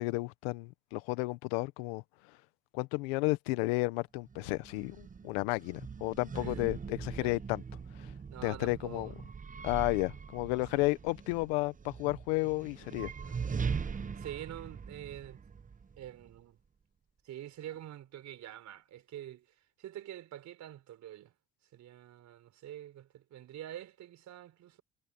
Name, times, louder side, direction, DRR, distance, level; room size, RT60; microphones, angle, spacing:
voice 1, 0.0-2.0 2.7-7.6 8.0-8.1 8.4-9.1 9.6-13.1, left 23 dB, 90° left, 1.2 m, -32 dB
sound 1, 4.3-16.4, right 6 dB, 25° right, 1.0 m, -41 dB
voice 2, 6.3-6.6 7.2-7.3 8.3-9.2 10.7-11.0 14.2-15.4 16.0-16.6 17.2-21.3 21.7-24.8, right 12 dB, 65° right, 4.5 m, -46 dB
supercardioid pair, 70°, 31 cm